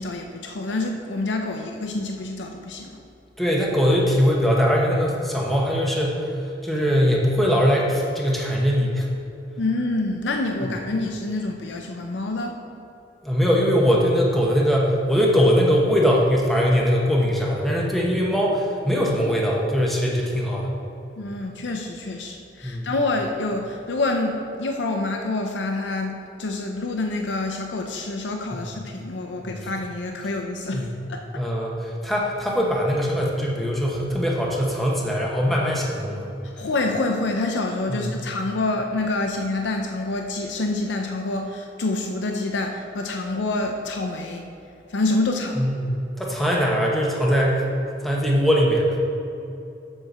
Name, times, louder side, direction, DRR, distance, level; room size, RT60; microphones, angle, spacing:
voice 1, 0.0-2.9 9.6-12.6 21.2-31.2 36.6-44.4 44.9-45.7, left 2 dB, 80° left, 3 dB, 0.6 m, -27 dB
voice 2, 3.4-6.3 6.6-9.1 13.2-20.8 22.6-22.9 28.5-28.6 29.4-29.5 30.7-30.9 31.3-36.3 37.9-38.1 45.6-47.6 48.0-49.0, equal, ahead, -3 dB, 1.0 m, -21 dB
7.5 x 4.8 x 6.6 m, 2.7 s
head